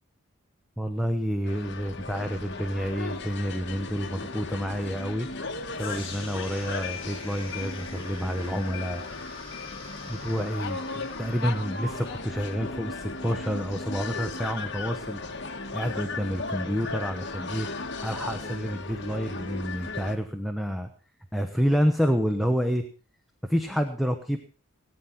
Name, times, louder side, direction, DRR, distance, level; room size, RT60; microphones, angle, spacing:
voice 1, 0.8-5.3 5.7-9.0 10.0-15.2 15.7-17.7 18.0-20.9 21.3-22.8 23.5-24.4, equal, ahead, 6 dB, 1.0 m, -29 dB
sound 1, 1.4-20.2, left 3 dB, 55° left, 1.3 m, -36 dB
sound 2, 5.8-13.8, left 3 dB, 25° left, 4.9 m, -46 dB
18.5 x 9.7 x 5.9 m, 0.39 s
head